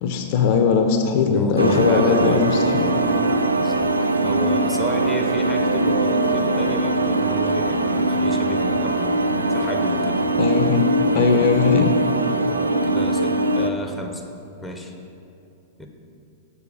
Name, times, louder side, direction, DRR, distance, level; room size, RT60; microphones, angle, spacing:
voice 1, 0.0-2.9 10.4-10.8 11.1-11.9, left 5 dB, 50° left, 5 dB, 0.6 m, -19 dB
voice 2, 1.2-2.5 3.0-3.9 4.2-9.2 9.5-10.2 12.5-14.2 14.6-14.9 15.8-15.9, left 1 dB, 5° left, 3 dB, 0.8 m, -33 dB
sound 1, 1.6-13.7, right 2 dB, 85° right, 0.3 m, -21 dB
6.9 x 4.8 x 4.8 m, 2.6 s
figure-of-eight pair, 100°, 0 cm